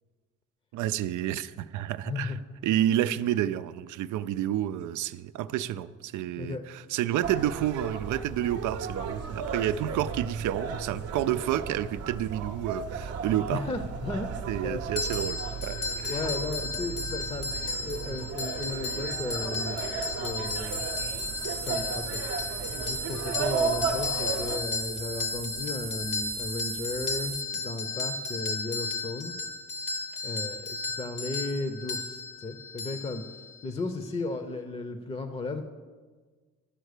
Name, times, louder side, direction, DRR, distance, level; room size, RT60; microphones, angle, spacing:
voice 1, 0.7-2.4 2.6-13.6 14.5-16.2, right 12 dB, 80° right, 14 dB, 0.5 m, -30 dB
voice 2, 2.1-2.4 6.4-6.6 13.5-14.3 14.6-14.8 16.1-19.9 20.2-20.8 21.6-22.2 22.6-29.3 30.2-33.2 33.6-35.6, left 3 dB, 20° left, 8 dB, 0.7 m, -35 dB
sound 1, 7.2-24.6, right 5 dB, 55° right, 0.8 m, -35 dB
sound 2, 15.0-33.7, left 3 dB, 80° left, 1.5 m, -34 dB
sound 3, 20.4-27.4, right 5 dB, 20° right, 0.4 m, -39 dB
12.0 x 4.5 x 6.6 m, 1.4 s
cardioid pair, 90°, 30 cm